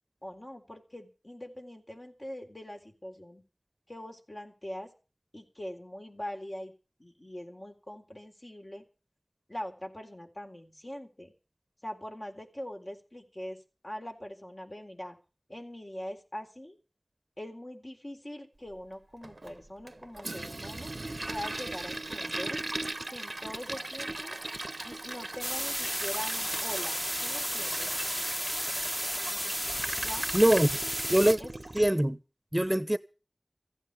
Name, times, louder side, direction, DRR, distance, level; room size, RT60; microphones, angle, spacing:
voice 1, 0.2-3.4 3.9-4.9 5.3-6.7 7.0-8.8 9.5-11.3 11.8-13.6 13.8-15.2 15.5-16.8 17.4-20.9 21.3-22.6 23.1-24.4 24.8-27.9 30.0-30.5 31.4-31.5, left 1 dB, 50° left, 3.9 m, -42 dB
Toilet flush, 19.2-31.9, right 2 dB, 65° right, 0.7 m, -39 dB
sound 1, 25.4-31.3, equal, 10° left, 1.0 m, -33 dB
voice 2, 30.3-30.7 31.1-31.4 31.7-32.2 32.5-33.0, right 1 dB, 20° right, 0.9 m, -23 dB
15.5 x 9.1 x 8.2 m
wide cardioid pair, 40°, 0 cm